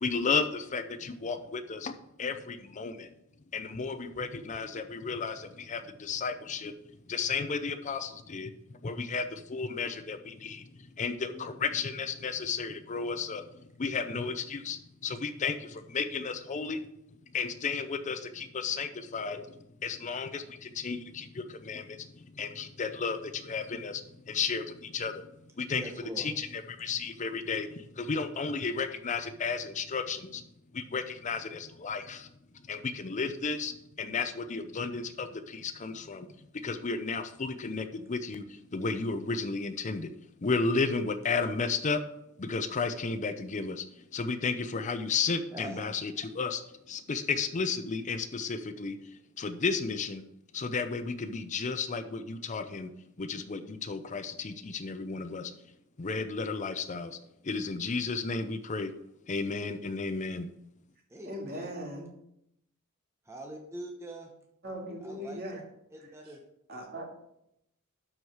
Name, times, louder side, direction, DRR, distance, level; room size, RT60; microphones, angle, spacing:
voice 1, 0.0-1.9 2.2-3.1 3.5-6.7 7.1-8.5 8.8-10.6 11.0-13.4 13.8-16.8 17.3-25.3 25.6-25.8 26.2-30.4 30.7-32.3 32.7-36.3 36.6-40.1 40.4-42.0 42.4-43.9 44.1-46.6 46.9-49.0 49.4-50.2 50.5-52.9 53.2-55.5 56.0-57.2 57.4-58.9 59.3-60.5, left 4 dB, 35° left, 9 dB, 0.5 m, -33 dB
voice 2, 11.3-11.7 25.7-26.3 45.5-45.9 61.1-61.7 63.3-64.3 65.0-65.6 65.9-66.4, right 1 dB, 15° right, 1 dB, 0.9 m, -43 dB
voice 3, 61.2-62.1 64.6-65.6 66.7-67.1, equal, 50° right, 0 dB, 2.1 m, -39 dB
11.5 x 4.7 x 4.8 m, 0.79 s
head